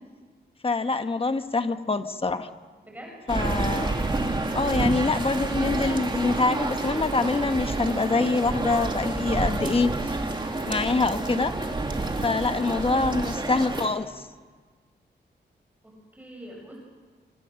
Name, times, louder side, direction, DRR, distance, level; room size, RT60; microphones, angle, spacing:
voice 1, 0.6-2.5 3.3-4.0 4.5-9.9 10.7-11.5 12.2-14.3, left 3 dB, 30° left, 8 dB, 1.3 m, -25 dB
voice 2, 2.8-3.2 15.8-16.8, equal, 10° right, -1 dB, 7.3 m, -44 dB
sound 1, 3.3-13.9, right 2 dB, 25° right, 2.9 m, -29 dB
27.5 x 26.5 x 6.5 m, 1.5 s
wide cardioid pair, 130°, 18 cm